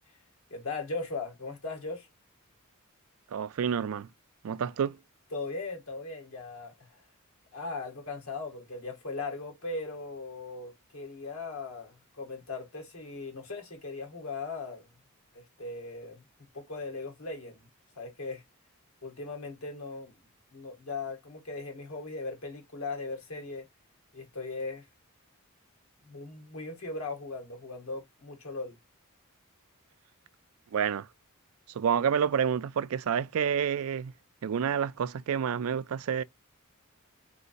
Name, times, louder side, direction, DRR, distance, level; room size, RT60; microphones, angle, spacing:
voice 1, 0.5-2.1 5.3-7.0 7.5-14.9 15.3-16.2 16.5-17.7 18.0-18.4 19.0-20.1 20.5-23.7 24.1-24.9 26.0-28.8, left 3 dB, 70° left, 2.0 m, -38 dB
voice 2, 3.3-4.1 4.4-5.0 30.7-31.1 31.7-34.1 34.4-36.2, right 7 dB, 70° right, 0.4 m, -29 dB
3.9 x 3.8 x 2.5 m
head